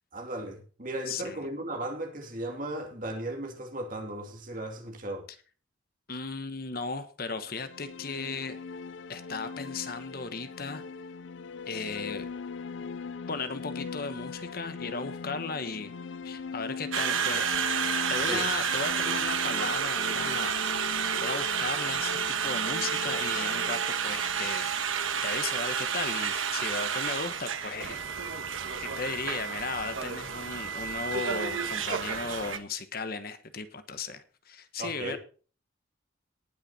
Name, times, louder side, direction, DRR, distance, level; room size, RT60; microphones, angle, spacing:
voice 1, 0.1-5.3 18.3-18.5 34.8-35.2, right 1 dB, 40° right, 2.6 m, -36 dB
voice 2, 1.1-1.5 6.1-8.6 9.1-10.8 11.7-12.2 13.3-15.9 16.2-17.5 18.1-20.5 21.1-28.0 28.8-35.2, left 4 dB, 50° left, 1.1 m, -36 dB
sound 1, 7.3-25.3, left 4 dB, 70° left, 0.5 m, -40 dB
Conversation, 16.9-32.6, right 7 dB, 85° right, 1.4 m, -30 dB
19.0 x 6.6 x 4.2 m
head